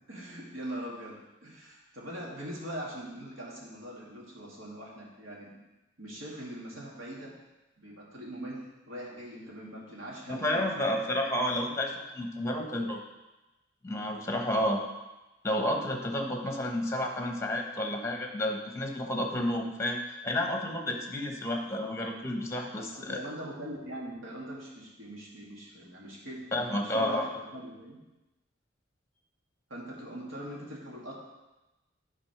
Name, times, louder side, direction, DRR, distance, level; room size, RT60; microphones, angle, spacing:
voice 1, 0.0-5.6 6.0-7.4 7.8-11.0 22.8-28.0 29.7-31.1, right 1 dB, 80° right, -4 dB, 2.2 m, -42 dB
voice 2, 10.3-13.0 13.8-14.8 15.4-23.2 26.5-27.2, left 1 dB, 15° left, 3 dB, 1.0 m, -31 dB
9.6 x 4.0 x 5.8 m, 1.0 s
head